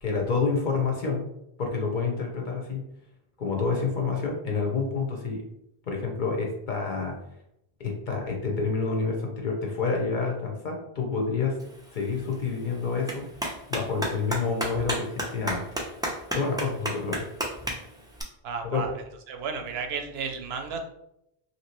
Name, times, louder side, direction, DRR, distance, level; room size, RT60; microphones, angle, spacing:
voice 1, 0.0-1.3 1.6-2.8 3.4-5.4 5.9-7.2 7.8-11.6 11.9-13.3 13.7-15.6 16.3-17.3 18.6-18.9, left 4 dB, 55° left, 1 dB, 0.7 m, -28 dB
Clapping, 11.6-18.2, right 1 dB, 5° right, 0.3 m, -34 dB
voice 2, 18.4-20.8, right 5 dB, 80° right, 5 dB, 0.8 m, -33 dB
2.9 x 2.8 x 2.9 m, 0.80 s
omnidirectional pair, 1.0 m